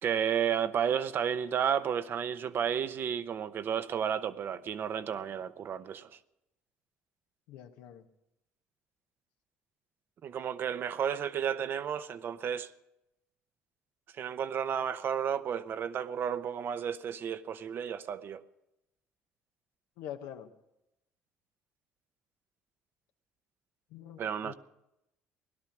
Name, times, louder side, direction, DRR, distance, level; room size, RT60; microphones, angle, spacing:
voice 1, 0.0-6.2 10.2-12.7 14.2-18.4 24.2-24.5, right 8 dB, 50° right, 0.8 m, -32 dB
voice 2, 7.5-8.1 20.0-20.5 23.9-24.5, left 10 dB, 85° left, 1.1 m, -45 dB
17.5 x 11.5 x 6.0 m
cardioid pair, 95°, 5 cm